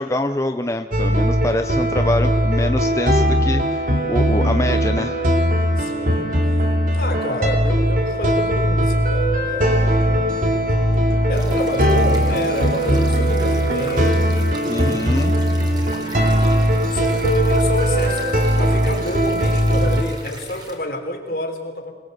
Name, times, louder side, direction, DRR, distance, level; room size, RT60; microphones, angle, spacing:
voice 1, 0.0-5.2 14.7-15.4, left 1 dB, 15° left, 7 dB, 0.7 m, -25 dB
sound 1, 0.9-20.0, equal, 50° right, 3.1 m, -19 dB
voice 2, 5.8-10.3 11.3-15.0 16.9-21.9, equal, 55° left, 4 dB, 4.0 m, -28 dB
sound 2, 11.3-20.7, right 2 dB, 25° right, 4.2 m, -39 dB
26.5 x 21.0 x 8.1 m, 1.4 s
head